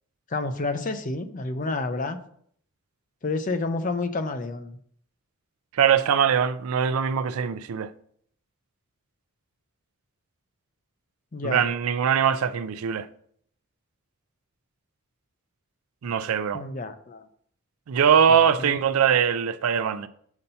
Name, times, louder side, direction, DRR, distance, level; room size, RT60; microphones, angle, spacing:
voice 1, 0.3-2.2 3.2-4.8 11.3-11.6 16.5-17.2 18.6-18.8, left 3 dB, 40° left, 0.5 m, -29 dB
voice 2, 5.7-7.9 11.4-13.1 16.0-16.6 17.9-20.1, right 7 dB, 90° right, 0.4 m, -22 dB
7.0 x 2.7 x 5.5 m
head